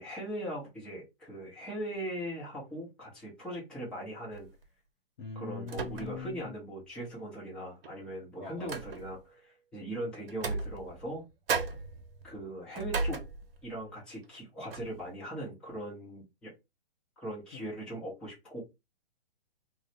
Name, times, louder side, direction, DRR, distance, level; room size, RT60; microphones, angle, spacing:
voice 1, 0.0-4.5 5.3-11.2 12.2-13.2 13.6-16.5 17.2-18.6, right 1 dB, 5° left, 0.7 m, -40 dB
sound 1, 4.3-4.6 5.7-6.4 6.8-6.9 7.8-9.3 10.3-11.2 11.5-13.8 14.2-14.4 14.7-15.0, right 4 dB, 60° right, 0.8 m, -36 dB
voice 2, 5.2-6.5 8.4-8.7 17.5-17.6, left 5 dB, 50° left, 0.7 m, -42 dB
3.1 x 2.0 x 4.0 m
hypercardioid pair, 155°, 31 cm